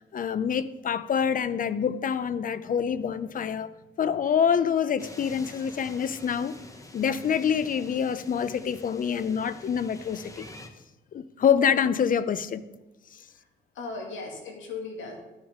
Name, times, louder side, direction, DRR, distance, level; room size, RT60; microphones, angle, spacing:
voice 1, 0.1-3.7 4.0-6.6 6.9-10.5 11.1-12.6, left 7 dB, 45° left, 0.6 m, -26 dB
sound 1, 5.0-10.7, left 1 dB, 15° left, 1.1 m, -47 dB
voice 2, 13.7-15.2, left 3 dB, 75° left, 2.3 m, -37 dB
12.5 x 6.4 x 3.6 m
cardioid pair, 90°, 20 cm